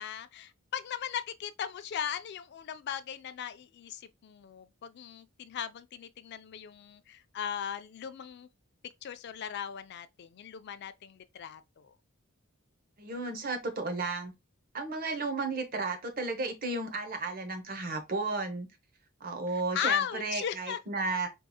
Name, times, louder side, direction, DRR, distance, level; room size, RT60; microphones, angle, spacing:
voice 1, 0.0-8.5 9.0-11.9 19.7-20.8, left 9 dB, 50° left, 0.3 m, -37 dB
voice 2, 13.0-14.3 14.7-18.7 19.2-21.3, right 3 dB, 45° right, 0.8 m, -33 dB
4.5 x 2.8 x 2.3 m
head